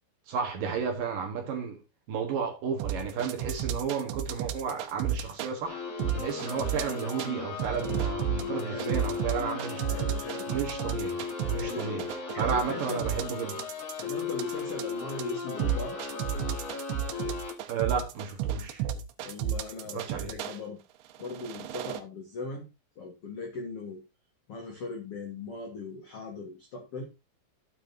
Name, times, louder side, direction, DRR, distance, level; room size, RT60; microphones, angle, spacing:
voice 1, 0.3-1.8 2.1-5.8 6.1-9.9 10.5-12.1 12.4-13.6 17.7-18.8 19.9-20.3, right 6 dB, 65° right, 2.4 m, -33 dB
sound 1, 2.8-5.5 6.0-7.3 7.6-20.6 21.2-22.0, right 9 dB, 90° right, 3.2 m, -32 dB
sound 2, 5.6-17.5, left 5 dB, 35° left, 3.2 m, -36 dB
voice 2, 8.4-9.0 9.9-10.5 11.5-13.1 14.0-16.0 19.2-20.8 21.2-22.7 23.0-24.0 24.5-27.0, left 3 dB, 75° left, 1.3 m, -39 dB
12.5 x 7.9 x 2.7 m
omnidirectional pair, 5.1 m